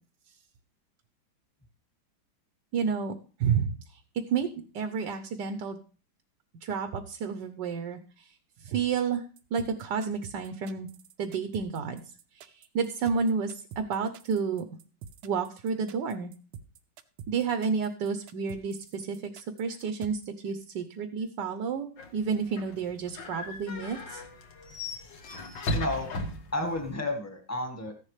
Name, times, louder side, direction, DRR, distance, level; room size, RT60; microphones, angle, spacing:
voice 1, 2.7-3.1 3.4-4.0 4.3-5.8 6.6-9.2 9.5-10.9 11.2-12.0 12.3-14.6 15.2-16.3 17.3-24.2, right 6 dB, 65° right, 7 dB, 1.4 m, -31 dB
sound 1, 9.4-20.3, right 7 dB, 80° right, 1.6 m, -47 dB
sound 2, 22.0-26.9, left 1 dB, 60° left, 2.1 m, -37 dB
voice 2, 25.7-26.1 26.5-27.9, left 2 dB, 10° left, 4 dB, 1.4 m, -31 dB
14.5 x 10.5 x 3.2 m, 0.39 s
omnidirectional pair, 2.2 m